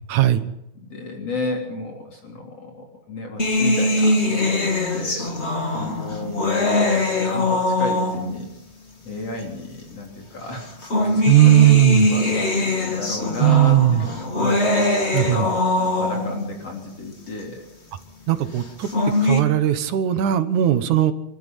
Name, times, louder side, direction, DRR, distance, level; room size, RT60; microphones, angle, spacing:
voice 1, 0.1-0.4 11.3-12.1 13.4-14.0 15.1-15.5 18.3-18.9 19.2-21.1, right 13 dB, 85° right, 10 dB, 2.8 m, -17 dB
voice 2, 0.8-5.3 5.7-8.5 9.0-10.7 11.0-17.6, left 2 dB, 55° left, 0 dB, 4.6 m, -33 dB
sound 1, 3.4-8.5 9.4-9.5 10.6-16.5 18.6-19.4, left 2 dB, 20° left, 2.7 m, -22 dB
27.5 x 13.0 x 9.3 m, 0.87 s
omnidirectional pair, 3.4 m